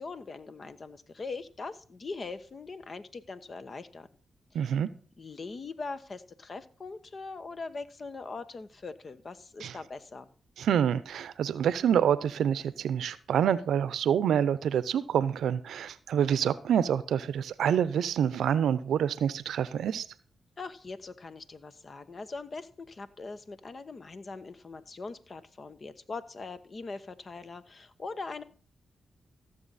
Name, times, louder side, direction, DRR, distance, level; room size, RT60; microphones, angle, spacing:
voice 1, 0.0-4.1 4.5-4.8 5.2-10.3 20.6-28.4, left 4 dB, 50° left, 1.1 m, -41 dB
voice 2, 4.5-4.9 9.6-9.8 10.6-20.0, right 8 dB, 80° right, 0.6 m, -27 dB
15.5 x 6.9 x 4.1 m
supercardioid pair, 45°, 0 cm